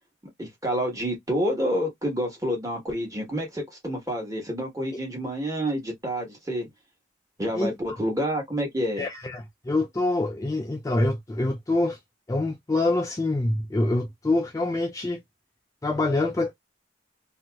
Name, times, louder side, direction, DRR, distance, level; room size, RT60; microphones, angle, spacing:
voice 1, 0.4-6.7 7.4-9.0, equal, 15° right, 1.2 m, -28 dB
voice 2, 9.0-12.0 12.3-15.2 15.8-16.5, left 2 dB, 15° left, 0.3 m, -25 dB
2.8 x 2.7 x 2.2 m
head